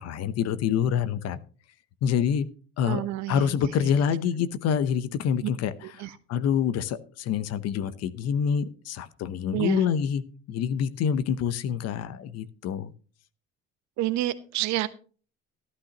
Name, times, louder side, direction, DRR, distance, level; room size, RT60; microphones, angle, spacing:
voice 1, 0.0-1.4 2.0-2.5 2.8-5.7 6.0-10.2 10.5-12.9, left 8 dB, 55° left, 15 dB, 0.9 m, -26 dB
voice 2, 2.8-3.9 5.4-5.5 5.8-6.1 9.5-9.8 14.0-14.9, right 15 dB, 65° right, 13 dB, 1.1 m, -29 dB
13.0 x 12.0 x 3.0 m, 0.40 s
supercardioid pair, 85°, 30 cm